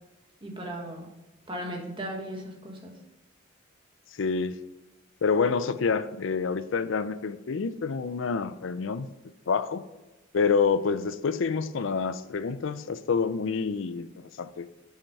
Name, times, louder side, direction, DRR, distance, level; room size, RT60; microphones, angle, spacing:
voice 1, 0.4-1.1 1.5-2.9, right 1 dB, 25° right, 0 dB, 1.5 m, -36 dB
voice 2, 4.2-4.6 5.2-9.1 9.5-9.8 10.3-14.1 14.4-14.7, left 5 dB, 70° left, 13 dB, 0.5 m, -27 dB
7.1 x 5.8 x 5.4 m, 1.1 s
head